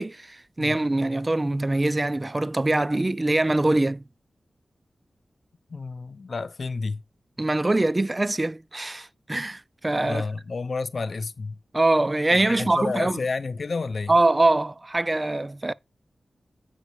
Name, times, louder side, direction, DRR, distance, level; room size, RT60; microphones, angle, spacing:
voice 1, 0.0-4.0 7.4-10.2 11.7-13.2 14.1-15.7, right 2 dB, 25° right, 0.4 m, -23 dB
voice 2, 5.7-7.0 10.0-11.6 12.3-14.1, left 4 dB, 60° left, 0.6 m, -30 dB
8.2 x 5.2 x 4.7 m
wide cardioid pair, 90°, 0 cm